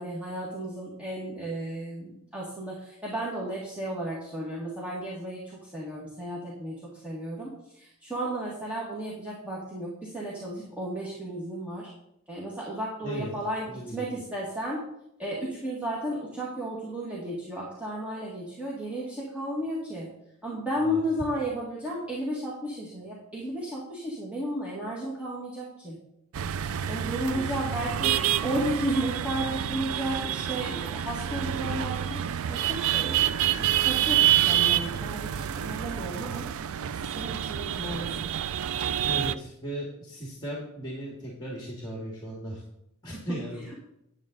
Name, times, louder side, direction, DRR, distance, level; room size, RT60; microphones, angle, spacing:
voice 1, 0.0-7.5 7.8-11.9 12.3-14.8 15.2-20.1 20.4-26.0 26.9-28.1 28.4-32.2 32.5-36.4 37.0-38.3, right 1 dB, 5° right, -6 dB, 1.8 m, -33 dB
voice 2, 13.0-13.3 13.7-14.1 20.8-21.0 27.0-28.0 39.0-42.6 43.0-43.7, right 1 dB, 20° left, -3 dB, 1.9 m, -37 dB
sound 1, 26.3-39.3, right 11 dB, 65° right, 0.4 m, -28 dB
10.5 x 7.5 x 3.9 m, 0.80 s
head